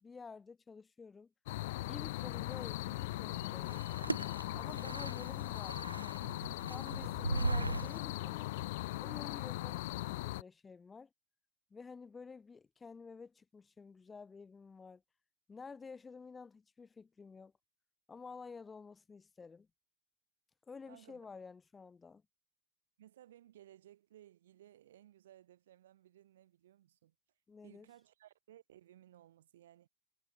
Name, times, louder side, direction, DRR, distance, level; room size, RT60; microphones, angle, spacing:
voice 1, 0.0-1.3 1.8-3.9 4.5-6.2 6.7-8.5 9.0-11.1 11.7-15.0 15.5-17.5 18.1-19.7 20.7-22.2 27.5-27.9, left 5 dB, 15° left, 2.0 m, -51 dB
sound 1, 1.5-10.4, left 18 dB, 50° left, 0.5 m, -39 dB
sound 2, 3.1-8.0, right 2 dB, 80° right, 0.5 m, -39 dB
voice 2, 20.9-21.2 23.0-27.1 27.6-29.9, right 12 dB, 60° right, 4.1 m, -60 dB
figure-of-eight pair, 90°, 0 cm